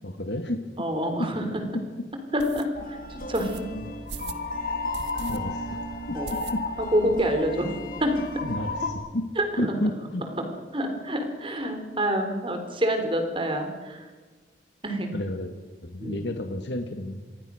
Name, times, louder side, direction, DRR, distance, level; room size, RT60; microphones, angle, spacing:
voice 1, 0.0-0.6 1.2-1.3 1.7-1.8 3.8-3.9 5.3-5.8 6.1-6.2 6.5-6.6 8.4-9.2 9.6-10.3 15.1-15.5 15.8-17.2, left 1 dB, 80° left, 6 dB, 1.8 m, -31 dB
voice 2, 0.8-1.6 2.3-3.7 6.1-6.3 6.9-8.1 9.4-9.8 10.7-14.1 14.8-15.2 16.0-16.3, equal, 30° right, 6 dB, 3.9 m, -27 dB
sound 1, 1.0-1.1 1.6-1.7 2.4-2.7 3.3-3.6 4.1-4.4 4.9-5.4 5.7-5.8 6.3-6.9 7.3-7.4 7.6-7.7 8.0-8.6, right 4 dB, 80° right, 1.7 m, -40 dB
sound 2, 2.8-8.9, left 2 dB, 55° left, 2.9 m, -33 dB
27.0 x 22.0 x 6.5 m, 1.3 s
head